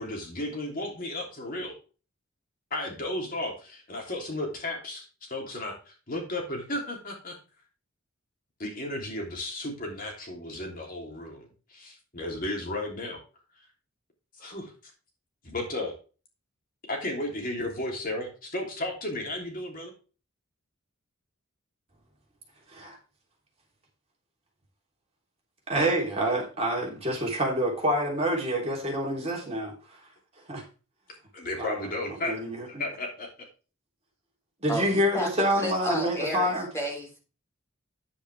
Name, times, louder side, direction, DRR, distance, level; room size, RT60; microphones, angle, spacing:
voice 1, 0.0-1.7 2.7-7.4 8.6-13.2 14.4-14.7 15.4-15.9 16.9-19.9 31.3-32.3 32.7-33.3, left 1 dB, 40° left, 0 dB, 3.1 m, -34 dB
voice 2, 25.7-29.7 30.5-30.6 31.6-31.8 32.2-32.6 34.6-36.7, right 1 dB, 30° right, -1 dB, 3.3 m, -27 dB
voice 3, 34.7-37.2, equal, 15° left, -1 dB, 3.6 m, -32 dB
10.0 x 8.5 x 3.4 m, 0.35 s
head